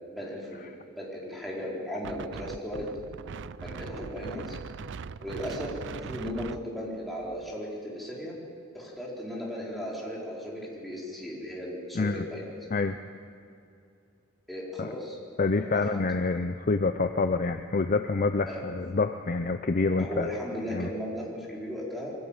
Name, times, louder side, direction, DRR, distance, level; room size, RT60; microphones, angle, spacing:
voice 1, 0.1-0.7 1.0-2.9 3.6-4.6 5.2-8.4 8.7-12.5 14.5-15.9 18.5-18.6 20.0-22.1, equal, ahead, -5 dB, 4.3 m, -36 dB
Wind, 2.0-7.5, right 5 dB, 55° right, 0.5 m, -41 dB
voice 2, 15.4-20.3 20.7-20.9, left 3 dB, 40° left, 8 dB, 0.6 m, -27 dB
22.5 x 15.0 x 8.9 m, 2.6 s
head